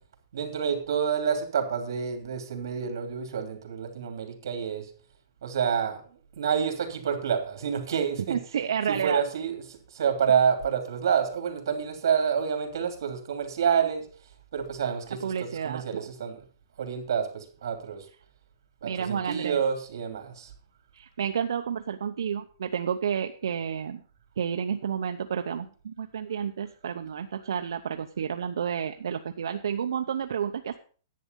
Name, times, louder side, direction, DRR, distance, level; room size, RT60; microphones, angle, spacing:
voice 1, 0.3-4.9 5.4-6.0 6.4-8.4 8.9-14.0 14.5-15.3 15.6-16.4 16.8-18.1 18.8-20.5, right 7 dB, 60° right, 6 dB, 2.9 m, -28 dB
voice 2, 8.3-9.2 15.2-16.1 18.8-19.6 20.9-24.0 24.4-30.8, right 7 dB, 90° right, 6 dB, 0.7 m, -30 dB
11.0 x 8.6 x 5.3 m, 0.41 s
hypercardioid pair, 175°, 2 cm